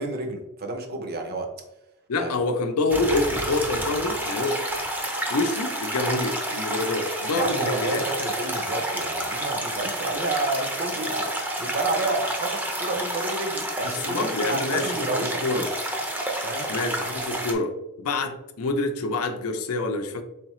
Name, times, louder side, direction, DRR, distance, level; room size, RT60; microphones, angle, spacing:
voice 1, 0.0-1.5 2.2-2.3 7.3-11.3 11.6-15.8 16.4-16.7, right 2 dB, 45° right, 0.7 m, -30 dB
voice 2, 2.1-4.7 5.3-8.0 13.8-15.7 16.7-20.2, left 2 dB, 90° left, 0.5 m, -27 dB
sound 1, 2.9-17.5, right 1 dB, 10° right, 0.5 m, -29 dB
3.8 x 3.3 x 3.0 m
head